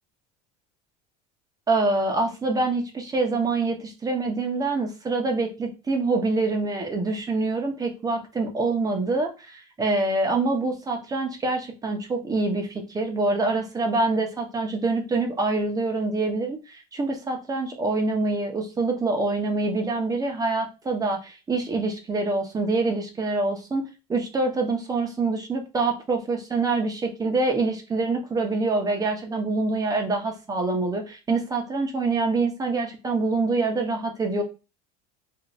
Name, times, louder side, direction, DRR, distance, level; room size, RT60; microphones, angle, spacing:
voice 1, 1.7-34.4, right 3 dB, 20° right, 3 dB, 0.7 m, -25 dB
2.6 x 2.5 x 3.0 m, 0.29 s
supercardioid pair, 115°, 20 cm